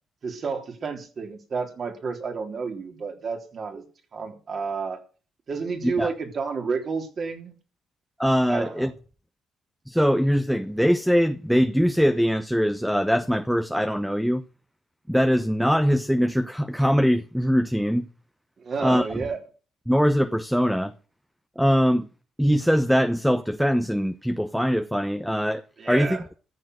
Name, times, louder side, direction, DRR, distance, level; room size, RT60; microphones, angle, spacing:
voice 1, 0.2-3.8 4.1-5.0 5.5-7.5 8.5-8.9 18.6-19.4 25.8-26.2, right 5 dB, 50° right, 3.6 m, -30 dB
voice 2, 8.2-8.9 9.9-14.4 15.1-18.1 18.8-19.3 19.9-20.9 21.6-22.1 22.4-26.2, equal, ahead, 0.9 m, -22 dB
14.0 x 7.3 x 7.9 m
cardioid pair, 90°, 0 cm